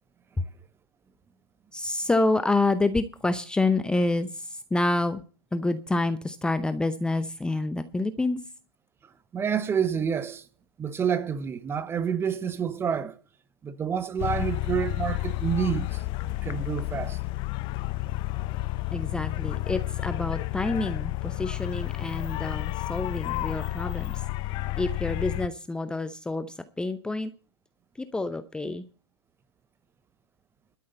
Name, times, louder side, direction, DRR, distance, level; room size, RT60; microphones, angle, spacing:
voice 1, 1.7-5.2 5.5-8.4 18.9-24.2 24.8-27.3 28.0-28.8, left 2 dB, 5° left, 0.7 m, -28 dB
voice 2, 9.3-10.4 10.8-13.2 13.6-17.2, right 7 dB, 15° right, 0.9 m, -28 dB
sound 1, 14.2-25.5, left 18 dB, 35° left, 0.8 m, -31 dB
12.5 x 6.4 x 8.0 m
hypercardioid pair, 120°, 14 cm